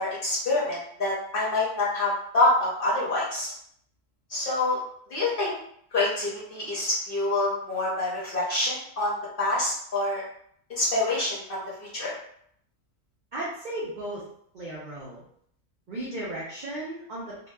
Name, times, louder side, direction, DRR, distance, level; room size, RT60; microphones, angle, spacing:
voice 1, 0.0-3.5 4.3-4.8 5.1-5.5 5.9-10.2 10.7-12.1, left 2 dB, 50° left, -7 dB, 0.7 m, -26 dB
voice 2, 13.3-14.2 14.5-15.2 15.9-17.5, right 1 dB, 80° right, -6 dB, 0.4 m, -35 dB
2.6 x 2.2 x 2.2 m, 0.67 s
omnidirectional pair, 1.5 m